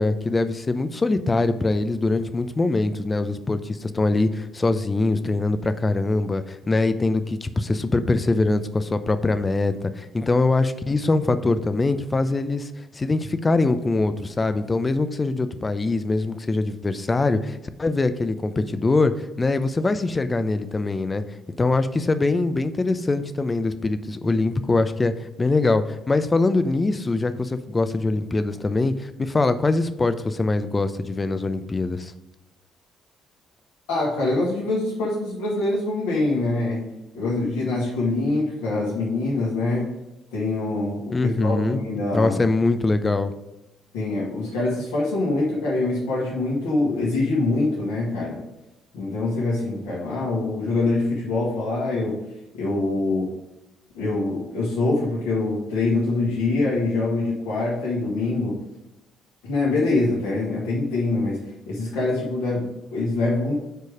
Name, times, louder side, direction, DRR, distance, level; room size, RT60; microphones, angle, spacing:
voice 1, 0.0-21.2 21.6-32.1 41.1-41.8 42.1-43.3, left 3 dB, 25° left, 11 dB, 0.7 m, -23 dB
voice 2, 33.9-39.9 40.3-42.4 43.9-48.4 48.9-52.2 52.5-53.4 53.9-58.6 59.4-63.5, left 2 dB, 75° left, -7 dB, 2.0 m, -24 dB
6.8 x 4.8 x 4.9 m, 0.93 s
figure-of-eight pair, 45°, 0 cm